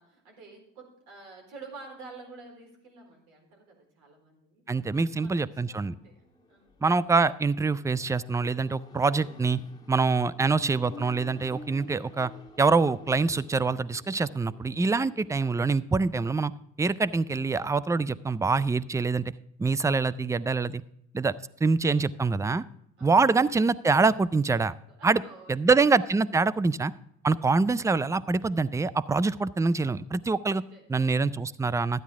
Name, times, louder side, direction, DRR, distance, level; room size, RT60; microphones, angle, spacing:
voice 1, 0.0-4.6 4.9-6.7 10.2-10.5 23.0-23.2 24.9-25.7 30.5-30.9, right 3 dB, 75° right, 1 dB, 4.2 m, -49 dB
voice 2, 4.7-6.0 6.8-9.6 9.9-12.3 12.6-16.5 16.8-19.2 19.6-20.8 21.1-21.3 21.6-22.6 23.0-24.7 25.0-25.2 25.5-26.9 27.2-30.6 30.9-32.0, right 4 dB, 10° right, 18 dB, 0.3 m, -25 dB
Accelerating revving vroom, 5.7-16.2, left 3 dB, 10° left, 1.7 m, -50 dB
12.5 x 9.5 x 3.6 m, 0.75 s
hypercardioid pair, 65°, 38 cm